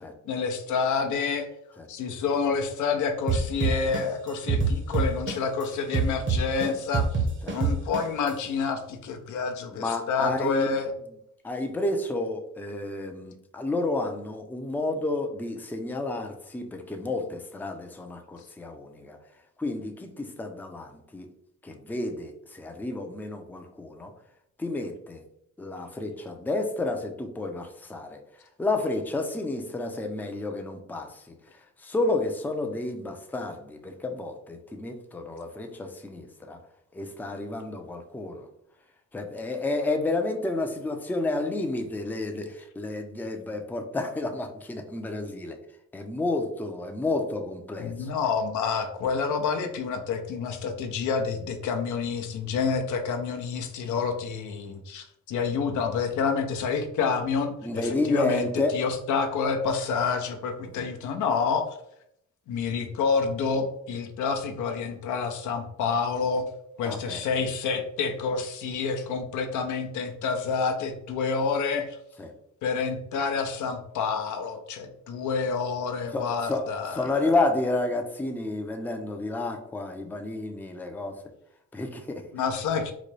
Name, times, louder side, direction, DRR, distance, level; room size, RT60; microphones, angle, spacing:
voice 1, 0.3-1.5 1.9-7.2 7.5-10.9 47.8-58.5 58.7-61.7 62.5-66.4 66.8-72.0 72.6-77.2 82.3-82.9, left 5 dB, 75° left, 5 dB, 0.6 m, -28 dB
sound 1, 3.3-5.6 5.9-8.3, right 5 dB, 40° right, 0.8 m, -25 dB
voice 2, 9.7-10.8 11.4-19.2 19.6-21.3 21.6-24.1 24.6-25.2 25.6-28.2 28.6-31.2 31.8-36.6 36.9-38.5 39.1-45.6 45.9-48.1 57.6-58.8 60.7-60.8 66.8-67.2 72.2-72.3 76.1-76.7 76.9-81.2 81.7-82.2, left 2 dB, 5° left, 4 dB, 0.4 m, -30 dB
3.9 x 2.2 x 3.2 m, 0.74 s
cardioid pair, 90°, 30 cm